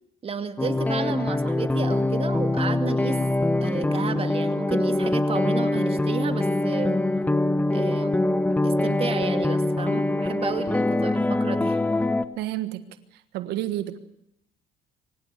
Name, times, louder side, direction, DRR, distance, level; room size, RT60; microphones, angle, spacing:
voice 1, 0.2-3.2 3.6-7.0 7.7-8.1 8.6-11.8, right 6 dB, 35° right, 9 dB, 2.3 m, -32 dB
sound 1, 0.6-12.2, left 2 dB, 10° left, 1.2 m, -24 dB
voice 2, 12.4-12.9 13.3-14.0, right 14 dB, 90° right, 11 dB, 1.5 m, -29 dB
25.5 x 16.5 x 9.8 m, 0.77 s
cardioid pair, 110°, 17 cm